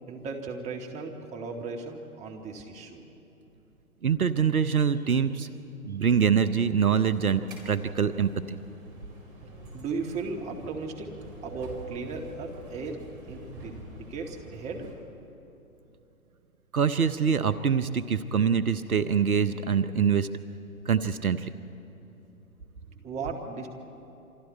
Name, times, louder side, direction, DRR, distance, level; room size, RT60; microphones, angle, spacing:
voice 1, 0.1-3.0 9.7-11.1 11.4-14.9 23.0-23.7, right 4 dB, 15° right, 2 dB, 1.8 m, -36 dB
voice 2, 4.0-5.5 5.8-8.6 16.7-20.3 20.9-21.5, right 7 dB, 75° right, 12 dB, 0.9 m, -24 dB
sound 1, 7.0-14.9, right 1 dB, 35° right, 4.5 m, -45 dB
28.0 x 25.0 x 4.5 m, 2.9 s
figure-of-eight pair, 125°, 44 cm